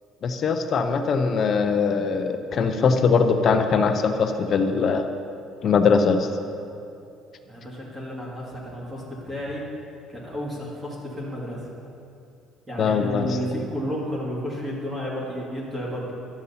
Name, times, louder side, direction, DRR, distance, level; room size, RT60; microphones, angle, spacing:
voice 1, 0.2-5.1 5.6-6.3 12.8-13.3, left 5 dB, 35° left, 7 dB, 0.6 m, -21 dB
voice 2, 7.4-9.6 10.1-11.6 12.7-16.1, equal, 15° right, -5 dB, 1.9 m, -32 dB
11.5 x 7.2 x 4.1 m, 2.6 s
cardioid pair, 160°, 0 cm